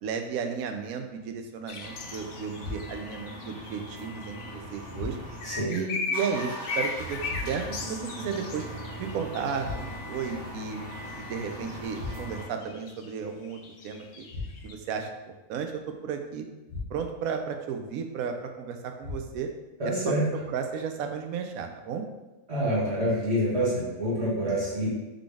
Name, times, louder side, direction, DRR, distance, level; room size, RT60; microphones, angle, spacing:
voice 1, 0.0-5.2 5.7-8.6 9.0-10.8 11.2-14.3 14.6-15.1 15.5-16.4 16.9-19.5 19.8-20.2 20.5-22.0, right 6 dB, 75° right, 5 dB, 1.0 m, -34 dB
sound 1, 1.7-4.9 5.3-9.9 10.2-14.7, left 4 dB, 65° left, 0.6 m, -38 dB
sound 2, 1.8-5.6 5.9-12.5, right 1 dB, 30° right, 1.4 m, -40 dB
sound 3, 2.6-3.2 4.9-5.6 7.3-7.9 9.6-10.2 11.9-12.6 14.3-14.9 16.7-17.3 19.0-19.6, left 3 dB, 25° left, 1.3 m, -39 dB
voice 2, 19.8-20.3 22.5-24.9, equal, 45° right, -8 dB, 1.8 m, -27 dB
3.9 x 3.6 x 3.4 m, 1.1 s
omnidirectional pair, 1.6 m